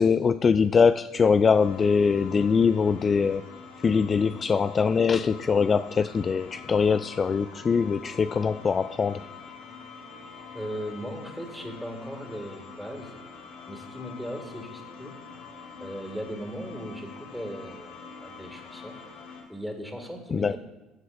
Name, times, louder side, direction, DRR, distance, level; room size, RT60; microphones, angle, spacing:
voice 1, 0.0-3.4 3.8-9.2 20.3-20.5, left 5 dB, 35° left, 13 dB, 0.3 m, -22 dB
sound 1, 1.4-19.4, left 5 dB, 65° left, 3.4 m, -45 dB
voice 2, 10.5-13.2 13.7-15.2 15.8-19.0 19.5-20.6, equal, ahead, 3 dB, 2.1 m, -38 dB
14.0 x 7.5 x 2.6 m, 1.1 s
hypercardioid pair, 65°, 0 cm